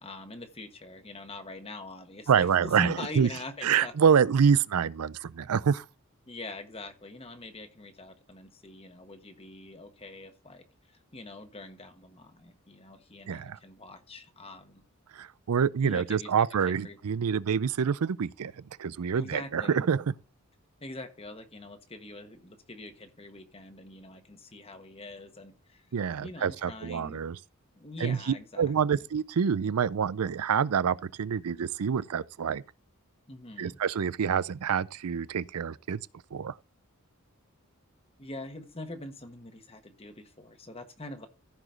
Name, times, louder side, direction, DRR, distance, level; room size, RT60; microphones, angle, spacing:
voice 1, 0.0-3.9 6.3-14.8 15.8-17.0 19.1-19.9 20.8-25.9 26.2-27.2 27.7-29.0 33.3-33.8 38.2-41.3, left 2 dB, 25° left, 1.3 m, -44 dB
voice 2, 2.3-3.3 3.6-5.8 13.3-13.6 15.1-20.0 25.9-27.4 28.0-28.2 28.6-32.6 33.6-36.6, right 7 dB, 90° right, 0.5 m, -27 dB
15.0 x 5.0 x 3.8 m
head